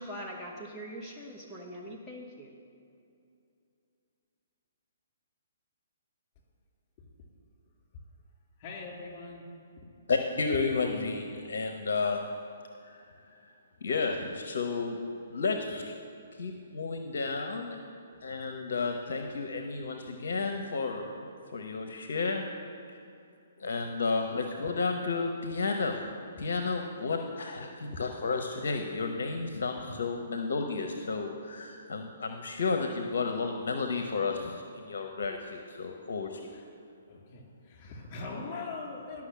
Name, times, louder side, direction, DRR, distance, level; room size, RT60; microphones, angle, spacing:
voice 1, 0.0-2.5, equal, ahead, -6 dB, 1.0 m, -42 dB
voice 2, 8.6-9.4 27.9-28.0 36.5-36.6 37.1-39.3, left 3 dB, 35° left, 0 dB, 2.8 m, -41 dB
voice 3, 10.1-12.2 12.8-13.5 13.8-15.0 15.3-15.9 16.3-17.8 18.2-21.2 21.5-22.4 22.9-23.0 23.6-26.1 26.4-36.5, left 4 dB, 60° left, 5 dB, 0.8 m, -32 dB
11.5 x 6.0 x 7.4 m, 2.5 s
figure-of-eight pair, 125°, 0 cm